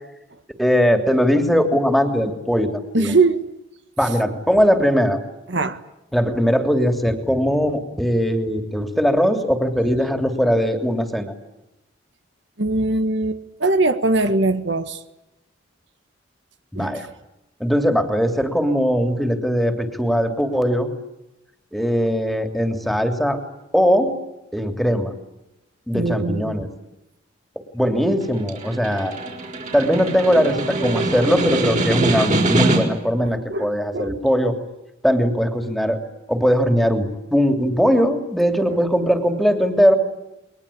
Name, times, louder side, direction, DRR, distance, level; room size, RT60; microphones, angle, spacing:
voice 1, 0.6-3.1 4.0-5.2 6.1-11.3 16.7-17.1 17.6-20.9 21.7-23.4 23.7-24.1 24.5-25.1 25.9-26.7 27.7-29.1 29.7-34.6 35.0-36.0 36.3-39.9, equal, ahead, 6 dB, 3.0 m, -20 dB
voice 2, 2.9-3.4 5.5-5.8 12.6-15.0 16.7-17.0 25.9-26.7 33.2-34.2 38.7-38.8, right 2 dB, 65° right, 9 dB, 1.6 m, -21 dB
Snare drum, 28.2-33.1, right 2 dB, 40° right, 5.7 m, -23 dB
30.0 x 22.5 x 8.6 m, 0.90 s
head